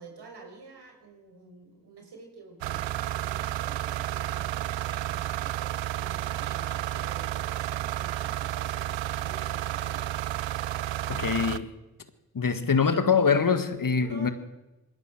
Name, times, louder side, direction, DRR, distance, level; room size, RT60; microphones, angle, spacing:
voice 1, 0.0-10.0 14.0-14.3, right 3 dB, 65° right, 5.9 m, -49 dB
sound 1, 2.6-11.6, right 13 dB, 90° right, 0.7 m, -31 dB
voice 2, 11.1-11.7 12.3-14.3, left 6 dB, 50° left, 1.9 m, -24 dB
20.5 x 16.5 x 7.8 m
supercardioid pair, 45°, 43 cm